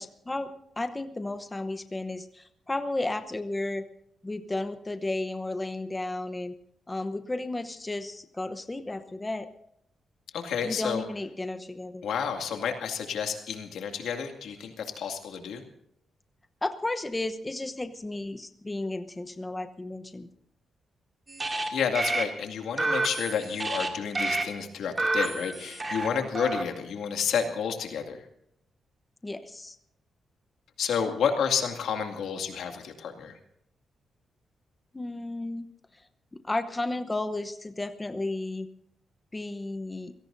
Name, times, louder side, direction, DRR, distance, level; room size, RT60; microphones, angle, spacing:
voice 1, 0.0-3.8 4.2-6.5 6.9-9.5 10.6-12.0 16.6-20.3 29.2-29.8 34.9-36.0 36.4-38.7 39.3-40.1, left 2 dB, 15° left, 8 dB, 0.9 m, -33 dB
voice 2, 10.3-11.0 12.0-15.6 21.7-28.3 30.8-33.4, left 7 dB, 85° left, 4 dB, 2.3 m, -30 dB
sound 1, 21.3-21.7 21.9-22.2 22.8-23.9 24.1-24.4 25.0-26.1 26.3-26.6, right 2 dB, 25° right, 2.6 m, -29 dB
29.0 x 17.5 x 2.7 m, 0.73 s
cardioid pair, 120°, 0 cm